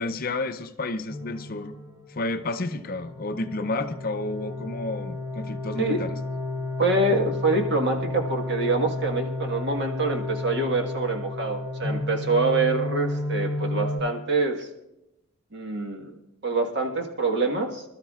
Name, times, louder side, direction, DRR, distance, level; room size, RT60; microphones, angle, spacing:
voice 1, 0.0-1.7 2.1-6.2, left 2 dB, 40° left, 8 dB, 0.5 m, -31 dB
sound 1, 1.1-14.0, left 2 dB, 15° right, 1.9 m, -32 dB
voice 2, 5.8-6.1 6.8-14.7 15.5-16.2 16.4-17.8, right 3 dB, 50° right, 3 dB, 1.5 m, -25 dB
25.0 x 13.0 x 2.4 m, 0.90 s
head